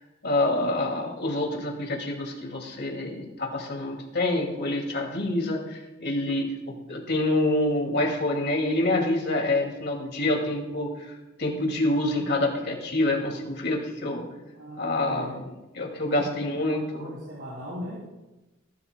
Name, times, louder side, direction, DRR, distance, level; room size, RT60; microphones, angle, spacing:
voice 1, 0.2-11.1 11.4-14.2 14.8-15.4 15.7-17.1, left 1 dB, 60° left, 1 dB, 2.2 m, -27 dB
voice 2, 14.5-15.5 16.0-16.3 16.7-18.0, equal, 75° right, -9 dB, 3.8 m, -38 dB
18.5 x 11.5 x 2.2 m, 1.1 s
head